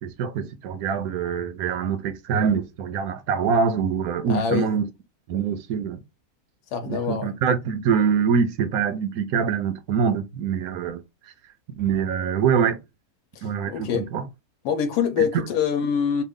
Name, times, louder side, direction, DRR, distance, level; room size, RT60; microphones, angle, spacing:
voice 1, 0.0-4.8 5.3-6.0 6.9-11.0 11.8-12.8 13.4-14.2, right 6 dB, 75° right, 1.1 m, -24 dB
voice 2, 4.2-4.8 6.7-7.3 13.4-14.1 14.6-16.2, left 7 dB, 90° left, 1.1 m, -25 dB
3.1 x 2.3 x 3.5 m
omnidirectional pair, 1.6 m